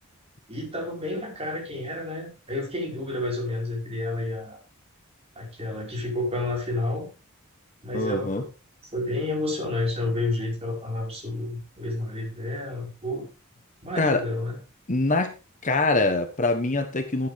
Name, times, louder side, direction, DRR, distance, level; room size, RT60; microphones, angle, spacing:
voice 1, 0.5-4.6 5.3-7.1 7.8-8.5 8.9-13.3 13.8-14.6, left 2 dB, 25° right, -1 dB, 5.1 m, -30 dB
voice 2, 7.9-8.4 14.0-14.2 14.9-15.3 15.6-17.3, left 2 dB, 35° left, 7 dB, 1.2 m, -24 dB
14.0 x 9.2 x 3.5 m, 0.30 s
head